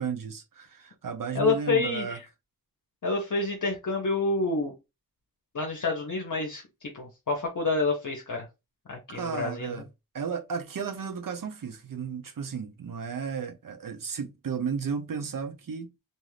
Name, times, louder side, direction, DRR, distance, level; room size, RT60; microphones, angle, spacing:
voice 1, 0.0-2.2 9.1-9.8 10.1-15.9, right 6 dB, 70° right, 0.6 m, -34 dB
voice 2, 1.3-2.2 3.0-4.7 5.5-8.5 8.9-9.8, left 3 dB, 60° left, 0.8 m, -28 dB
2.6 x 2.4 x 3.2 m
wide cardioid pair, 65°, 35 cm